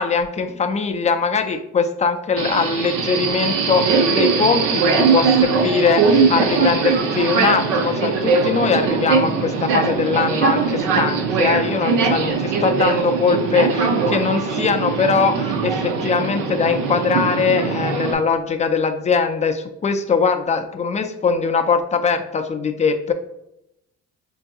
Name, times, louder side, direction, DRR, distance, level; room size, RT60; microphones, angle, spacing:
voice 1, 0.0-23.1, left 5 dB, 25° left, 6 dB, 0.3 m, -21 dB
Subway metro underground, 2.4-18.1, right 5 dB, 85° right, 0.5 m, -20 dB
4.5 x 2.6 x 2.2 m, 0.84 s
cardioid pair, 90°, 30 cm